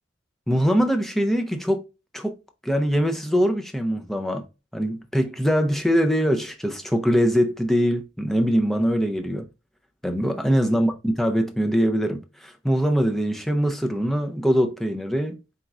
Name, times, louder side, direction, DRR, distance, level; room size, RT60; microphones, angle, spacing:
voice 1, 0.5-1.8 2.1-2.4 2.6-4.5 4.7-9.5 10.0-15.4, equal, ahead, 0.5 m, -22 dB
4.1 x 3.7 x 2.3 m
head